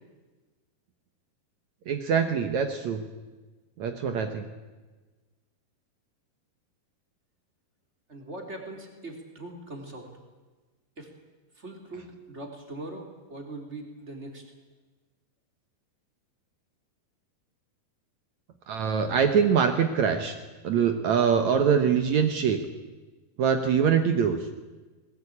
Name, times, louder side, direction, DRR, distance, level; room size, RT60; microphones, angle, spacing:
voice 1, 1.9-3.0 3.8-4.5 18.7-20.4 20.6-22.6 23.4-24.4, right 7 dB, 65° right, 7 dB, 2.0 m, -23 dB
voice 2, 8.1-10.1 11.0-11.1 11.5-14.4, right 2 dB, 20° right, 2 dB, 3.1 m, -41 dB
21.0 x 19.5 x 8.6 m, 1.2 s
omnidirectional pair, 4.5 m